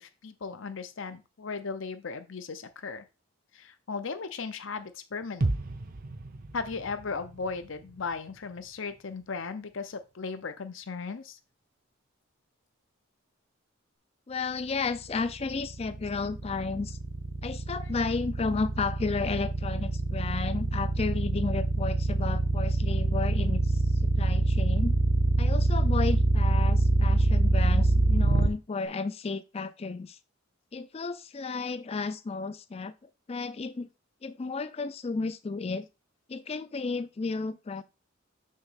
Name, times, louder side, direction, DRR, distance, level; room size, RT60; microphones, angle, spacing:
voice 1, 0.0-3.0 3.5-5.5 6.5-11.4 17.7-17.9, left 4 dB, 65° left, 0.7 m, -37 dB
sound 1, 5.4-9.3 9.7-9.8, right 2 dB, 45° right, 0.6 m, -35 dB
voice 2, 14.3-17.0 17.4-23.6 24.2-24.9 25.4-30.2 30.7-32.9 33.3-33.9 34.2-35.9 36.3-37.8, left 4 dB, 30° left, 0.4 m, -33 dB
sound 2, 15.2-28.5, right 2 dB, 70° right, 1.0 m, -25 dB
6.4 x 2.9 x 5.7 m
head